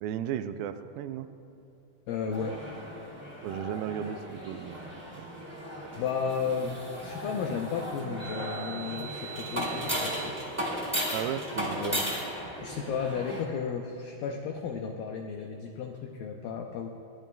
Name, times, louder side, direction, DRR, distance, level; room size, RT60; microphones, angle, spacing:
voice 1, 0.0-1.3 3.4-4.9 5.2-5.3 11.1-12.0, right 10 dB, 90° right, 9 dB, 2.0 m, -35 dB
voice 2, 2.1-2.6 6.0-10.4 11.8-12.1 12.6-16.9, left 6 dB, 85° left, 2 dB, 2.0 m, -34 dB
sound 1, 2.3-13.4, equal, 5° right, 1.5 m, -36 dB
21.5 x 16.0 x 2.3 m, 2.7 s
omnidirectional pair, 4.7 m